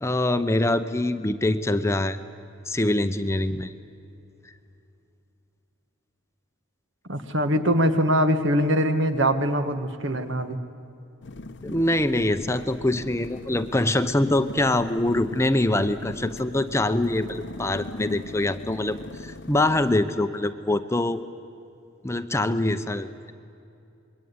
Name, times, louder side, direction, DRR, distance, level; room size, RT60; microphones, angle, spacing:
voice 1, 0.0-2.2 2.7-3.7 11.6-21.2 22.0-23.3, left 1 dB, 15° left, 10 dB, 0.7 m, -24 dB
voice 2, 7.1-10.6, equal, 60° right, 8 dB, 1.7 m, -22 dB
sound 1, 11.2-19.9, left 2 dB, 55° left, 0.8 m, -40 dB
27.0 x 22.5 x 9.6 m, 2.7 s
head